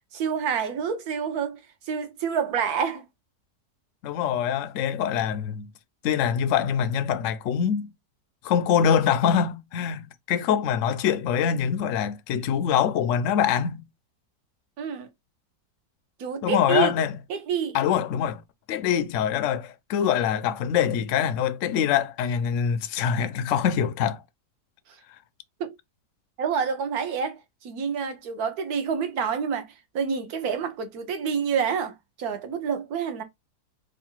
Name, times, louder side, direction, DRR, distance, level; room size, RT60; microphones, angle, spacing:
voice 1, 0.1-1.6 1.9-3.0 14.8-15.1 16.2-16.9 17.3-17.8 25.6-25.7 26.4-29.7 29.9-31.9 32.2-33.2, right 6 dB, 65° right, 1.2 m, -28 dB
voice 2, 4.0-5.7 6.0-7.9 8.4-13.8 16.4-17.2 17.7-18.4 18.7-24.2, left 8 dB, 75° left, 0.7 m, -24 dB
3.2 x 2.4 x 4.4 m
omnidirectional pair, 1.9 m